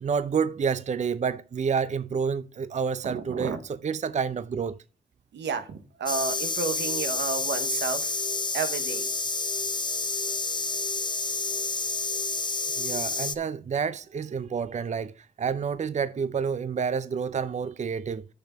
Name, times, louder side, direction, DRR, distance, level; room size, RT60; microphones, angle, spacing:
voice 1, 0.0-4.8 12.8-18.3, right 6 dB, 40° right, 0.5 m, -29 dB
voice 2, 3.0-3.6 5.3-8.2 8.5-9.1, right 5 dB, 85° right, 1.2 m, -31 dB
sound 1, 6.1-13.4, left 3 dB, 25° left, 0.9 m, -29 dB
6.7 x 6.1 x 5.6 m
cardioid pair, 55°, 18 cm